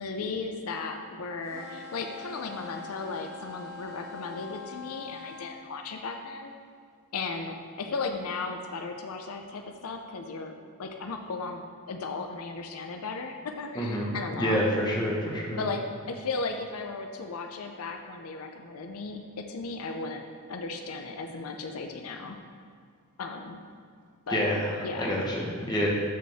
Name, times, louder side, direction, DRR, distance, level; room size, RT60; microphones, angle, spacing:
voice 1, 0.0-6.5 7.1-10.5 10.8-14.6 15.5-20.2 20.5-22.4 23.2-23.6 24.3-24.5 24.8-25.2, left 4 dB, 80° left, 4 dB, 0.6 m, -36 dB
sound 1, 1.4-5.5, left 4 dB, 15° right, 2.0 m, -43 dB
voice 2, 13.7-15.6 24.3-24.7 25.0-25.9, equal, 20° left, -3 dB, 1.1 m, -28 dB
12.5 x 4.3 x 3.5 m, 2.1 s
head